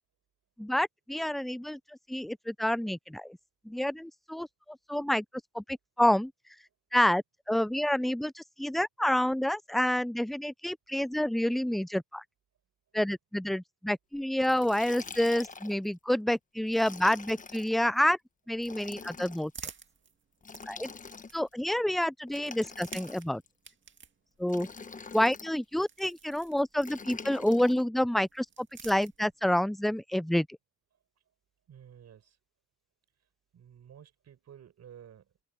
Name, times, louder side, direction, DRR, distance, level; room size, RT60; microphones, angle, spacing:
voice 1, 0.6-1.8 2.1-3.4 3.7-5.2 5.5-6.3 6.9-12.2 12.9-18.2 18.5-19.5 20.7-20.9 21.3-23.4 24.4-24.7 25.1-30.5, left 1 dB, ahead, 0.5 m, -28 dB
Liquid, 14.4-15.9 16.7-17.8 18.6-19.5 20.4-21.5 22.3-23.5 24.5-25.5 26.8-27.8, left 4 dB, 25° left, 1.2 m, -45 dB
sound 1, 18.9-21.7 22.6-27.2 28.1-29.6, right 6 dB, 40° right, 2.0 m, -51 dB
voice 2, 31.7-32.4 33.5-35.4, right 9 dB, 60° right, 5.9 m, -53 dB
open air
cardioid pair, 90°, 30 cm